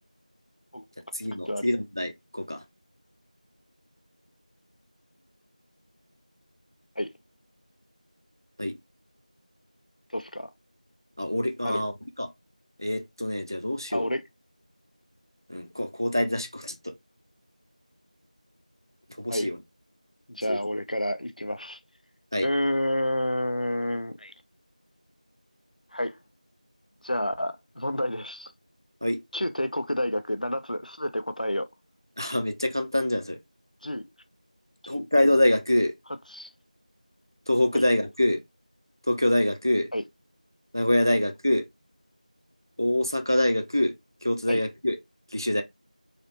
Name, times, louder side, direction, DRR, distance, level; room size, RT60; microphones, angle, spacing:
voice 1, 1.1-2.6 8.6-8.8 11.2-11.9 12.2-12.3 12.8-14.1 15.5-16.9 19.2-19.6 20.5-20.6 22.3-22.5 29.0-29.2 32.2-33.4 34.9-35.9 37.5-38.4 39.1-39.9 40.7-41.6 42.8-43.9 44.2-45.0 45.3-45.6, left 1 dB, 30° right, 0.4 m, -25 dB
voice 2, 10.1-10.5 11.6-11.8 13.9-14.2 19.3-19.5 20.3-21.8 22.4-24.3 25.9-26.2 27.0-28.5 29.3-31.7 33.8-34.1 34.9-35.1 36.3-36.5 37.7-37.8 39.9-40.0 44.5-44.6, left 1 dB, 80° left, 0.6 m, -29 dB
3.2 x 2.6 x 2.8 m
figure-of-eight pair, 180°, 4 cm